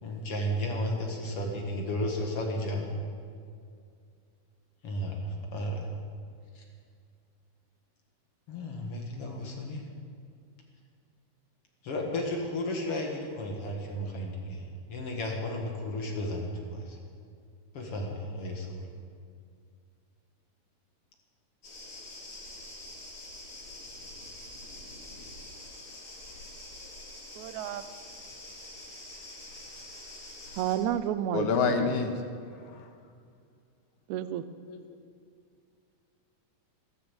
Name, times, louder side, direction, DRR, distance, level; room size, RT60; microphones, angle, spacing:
voice 1, 0.0-2.9 4.8-5.9 6.5-6.6 8.5-9.8 11.8-17.0 17.7-18.7, left 1 dB, 50° left, 1 dB, 2.5 m, -33 dB
sound 1, 21.6-30.8, left 1 dB, 90° left, 5.9 m, -45 dB
voice 2, 27.4-27.8 30.6-32.0 34.1-34.4, right 10 dB, 75° right, 12 dB, 1.9 m, -31 dB
voice 3, 31.3-32.1 32.8-32.9 34.7-34.8, left 5 dB, 70° left, 5 dB, 2.6 m, -27 dB
14.0 x 14.0 x 7.0 m, 2.3 s
omnidirectional pair, 3.7 m